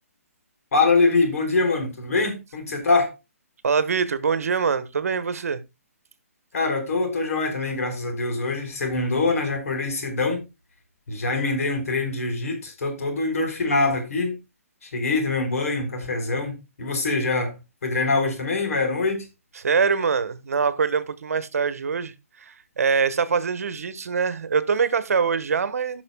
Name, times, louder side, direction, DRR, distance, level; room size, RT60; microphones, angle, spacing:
voice 1, 0.7-3.1 6.5-10.4 11.1-14.3 14.8-19.3, left 3 dB, 70° left, 4.5 m, -24 dB
voice 2, 3.6-5.6 19.6-26.0, right 5 dB, 70° right, 1.2 m, -24 dB
17.5 x 6.0 x 2.2 m
hypercardioid pair, 150°, 8 cm